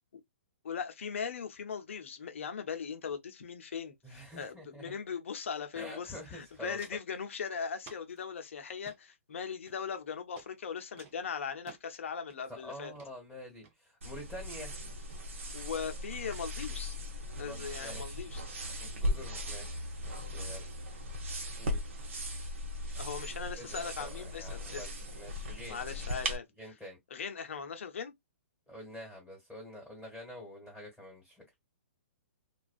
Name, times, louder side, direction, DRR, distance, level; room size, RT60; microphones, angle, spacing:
voice 1, 0.6-12.9 15.5-16.9 17.4-18.4 23.0-24.9 25.7-26.5 27.1-28.1, left 6 dB, 70° left, 0.7 m, -39 dB
voice 2, 4.0-4.9 5.7-6.8 12.5-14.8 17.4-18.2 18.6-20.6 21.6-21.9 23.6-25.8 26.6-27.0 28.7-31.6, equal, ahead, 1.4 m, -47 dB
Walk footsteps, 5.9-6.0 6.2-7.1 7.8-8.2 8.7-9.0 9.7-10.0 10.4-10.5 11.0-11.8 12.3-12.6 12.9-13.1 13.6-13.7, right 6 dB, 30° right, 0.7 m, -55 dB
sound 1, 14.0-26.4, equal, 70° right, 1.0 m, -38 dB
2.4 x 2.3 x 2.2 m
hypercardioid pair, 130°, 7 cm